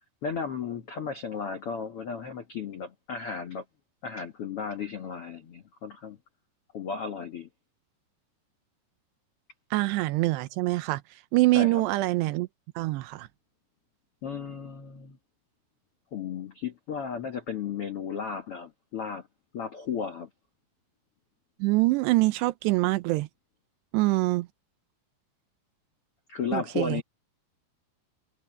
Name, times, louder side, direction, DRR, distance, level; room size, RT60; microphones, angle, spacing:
voice 1, 0.2-3.6 4.0-6.2 6.7-7.5 11.5-11.8 14.2-15.2 16.1-19.2 19.5-20.3 26.3-27.0, left 6 dB, 85° left, 1.2 m, -34 dB
voice 2, 9.7-11.0 11.3-12.5 12.8-13.3 21.6-23.3 23.9-24.5 26.5-27.0, right 20 dB, 80° right, 2.6 m, -24 dB
omnidirectional pair, 5.2 m